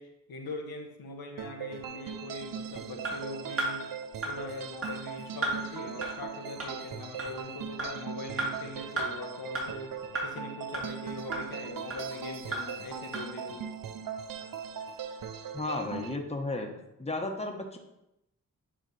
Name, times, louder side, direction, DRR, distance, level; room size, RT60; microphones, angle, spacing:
voice 1, 0.0-3.9 4.2-13.7, left 2 dB, 80° left, 2 dB, 1.0 m, -41 dB
sound 1, 1.4-16.2, right 7 dB, 70° right, 0.6 m, -40 dB
sound 2, 3.0-3.1 3.6-3.7 4.2-4.3 4.8-4.9 5.4-5.5 6.0-6.1 6.6-6.7 7.2-7.3 7.8-7.9 8.4-8.5 9.0-9.1 9.5-9.6 10.1-10.3 10.7-10.8 11.3-11.4 11.9-12.0 12.5-12.6 13.1-13.2, right 2 dB, 40° right, 2.3 m, -31 dB
voice 2, 15.5-16.7 17.0-17.8, left 2 dB, 20° left, 3 dB, 1.1 m, -33 dB
9.3 x 3.3 x 4.2 m, 0.86 s
cardioid pair, 50°, 36 cm